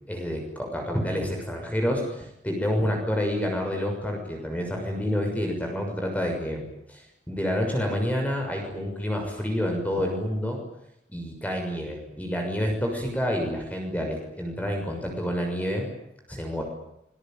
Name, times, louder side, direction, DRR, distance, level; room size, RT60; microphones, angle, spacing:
voice 1, 0.0-7.0 7.3-10.6 11.1-15.9 16.3-16.6, equal, 10° left, 2 dB, 6.5 m, -28 dB
26.0 x 22.0 x 9.2 m, 0.81 s
head